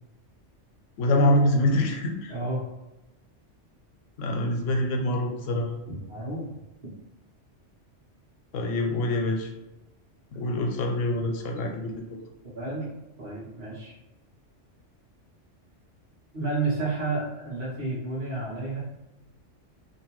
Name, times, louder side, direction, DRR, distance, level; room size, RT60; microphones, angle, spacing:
voice 1, 1.0-2.3 4.2-5.7 8.5-9.5 10.3-12.2, left 1 dB, 85° left, 2 dB, 0.9 m, -25 dB
voice 2, 2.3-2.6 5.8-6.5 12.5-12.9 13.2-13.9 16.3-18.8, right 3 dB, 45° right, -8 dB, 1.0 m, -31 dB
2.7 x 2.1 x 3.0 m, 1.0 s
omnidirectional pair, 1.3 m